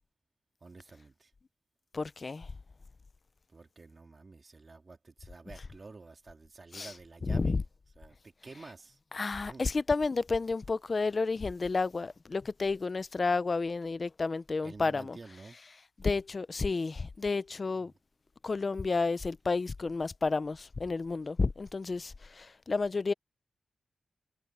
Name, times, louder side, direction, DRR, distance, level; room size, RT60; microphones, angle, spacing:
voice 1, 0.6-1.3 3.5-7.6 8.0-9.0 9.5-9.6 14.6-15.6, right 3 dB, 35° right, 3.0 m, -50 dB
voice 2, 1.9-2.5 6.7-6.9 7.2-7.6 9.1-15.2 16.0-17.9 18.4-23.1, left 4 dB, 40° left, 0.5 m, -31 dB
wide cardioid pair, 120°, 0 cm